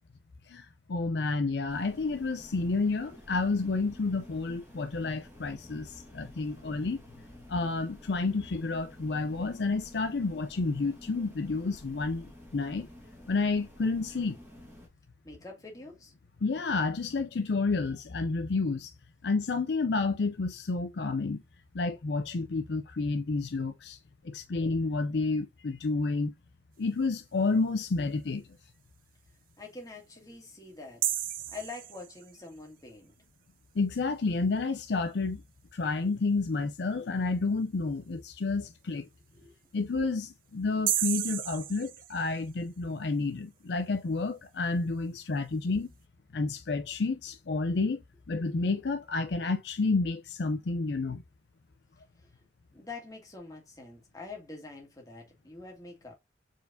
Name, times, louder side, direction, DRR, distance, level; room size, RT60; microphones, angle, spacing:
voice 1, 0.5-7.0 7.5-12.9 13.3-14.4 16.4-18.9 19.2-21.4 21.7-24.0 24.2-26.3 26.8-28.4 33.8-35.4 35.7-39.1 39.7-45.9 46.3-48.0 48.3-51.2, left 3 dB, 65° left, 0.5 m, -30 dB
sound 1, 1.7-14.9, equal, 10° right, 1.8 m, -51 dB
voice 2, 15.2-16.1 29.6-31.1 31.5-33.1 39.3-39.5 52.2-52.3 52.7-56.2, left 3 dB, 20° left, 1.9 m, -45 dB
sound 2, 31.0-32.5 40.9-42.6, right 12 dB, 50° right, 0.5 m, -33 dB
4.5 x 4.4 x 2.6 m
head